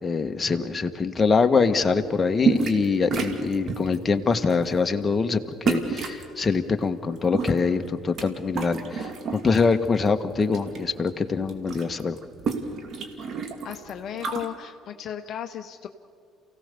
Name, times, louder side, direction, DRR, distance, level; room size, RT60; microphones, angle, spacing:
voice 1, 0.0-12.2, left 4 dB, 30° left, 6 dB, 1.6 m, -24 dB
sound 1, 2.4-2.9 3.1-4.0 4.5-4.7 5.7-6.2 7.1-8.3 8.5-9.6 10.1-10.8 11.1-11.2 11.4-14.5, right 5 dB, 55° right, 2.7 m, -29 dB
voice 2, 13.6-15.9, left 10 dB, 55° left, 6 dB, 1.0 m, -35 dB
28.5 x 17.0 x 6.9 m, 2.3 s
hypercardioid pair, 60°, 0 cm